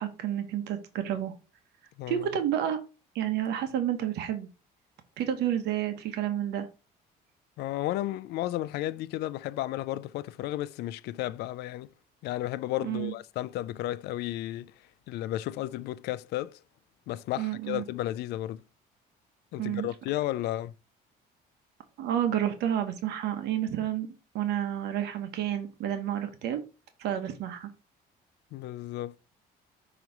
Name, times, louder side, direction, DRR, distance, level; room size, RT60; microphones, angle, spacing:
voice 1, 0.0-1.3 2.1-2.8 3.1-4.5 5.2-6.7 12.8-13.1 17.4-17.8 19.6-19.9 22.0-26.6 27.0-27.7, right 10 dB, 80° right, 1.0 m, -30 dB
voice 2, 7.6-11.9 12.2-14.7 15.1-16.6 17.1-18.6 19.5-20.7 28.5-29.2, left 14 dB, 75° left, 0.4 m, -33 dB
5.9 x 3.0 x 5.3 m
cardioid pair, 110°, 17 cm